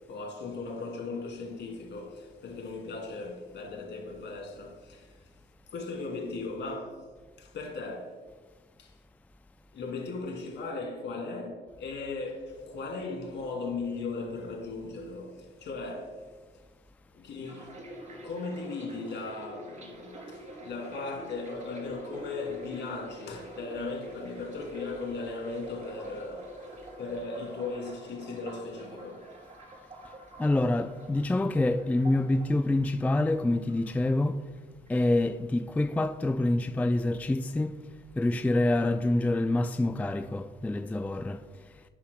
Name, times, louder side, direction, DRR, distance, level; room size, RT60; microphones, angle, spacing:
voice 1, 0.0-5.2 5.7-7.1 7.4-8.2 8.8-8.9 9.7-16.2 17.1-26.6 27.0-29.3, left 3 dB, 65° left, 2.6 m, -37 dB
sound 1, 17.4-33.4 33.7-34.6 34.9-35.2, right 1 dB, 40° right, 2.9 m, -47 dB
voice 2, 30.4-34.4 34.9-37.8 38.2-41.4, left 2 dB, 10° left, 0.3 m, -26 dB
11.5 x 10.0 x 2.2 m
cardioid pair, 90°, 20 cm